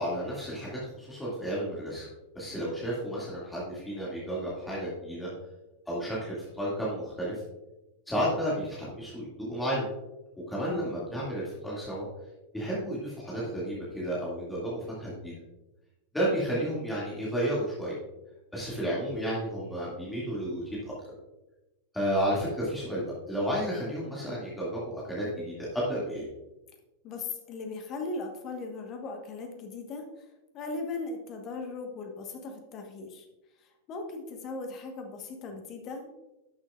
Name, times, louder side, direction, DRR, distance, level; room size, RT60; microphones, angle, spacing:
voice 1, 0.0-2.1 2.3-5.3 5.9-7.4 8.1-9.9 10.5-12.1 12.5-15.4 16.1-18.0 18.5-20.9 21.9-26.3, equal, 5° left, -7 dB, 2.4 m, -32 dB
voice 2, 27.0-30.0 30.5-33.2 33.6-36.1, left 3 dB, 35° left, 4 dB, 1.3 m, -38 dB
11.5 x 7.1 x 2.5 m, 1.0 s
figure-of-eight pair, 90°, 0 cm